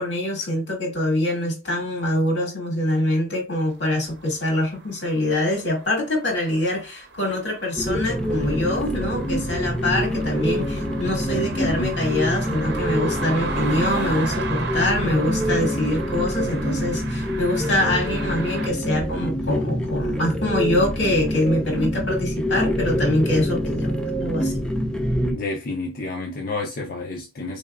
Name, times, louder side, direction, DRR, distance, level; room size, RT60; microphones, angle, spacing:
voice 1, 0.0-24.5, left 1 dB, 80° left, 2.1 m, -24 dB
sound 1, 4.0-18.7, right 4 dB, 65° right, 0.7 m, -36 dB
sound 2, 7.8-25.3, equal, 5° left, 0.5 m, -26 dB
voice 2, 11.3-12.0 25.3-27.6, left 2 dB, 50° left, 0.6 m, -30 dB
3.8 x 3.5 x 2.2 m
head